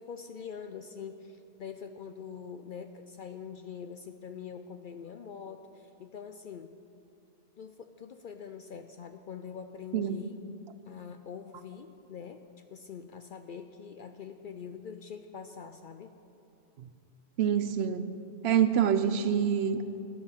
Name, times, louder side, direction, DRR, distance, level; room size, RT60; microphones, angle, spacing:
voice 1, 0.0-6.8 7.6-10.4 10.9-16.1, left 6 dB, 60° left, 8 dB, 0.6 m, -44 dB
voice 2, 17.4-18.1 18.4-19.8, right 8 dB, 65° right, 11 dB, 0.8 m, -26 dB
12.5 x 11.0 x 5.6 m, 2.7 s
omnidirectional pair, 1.2 m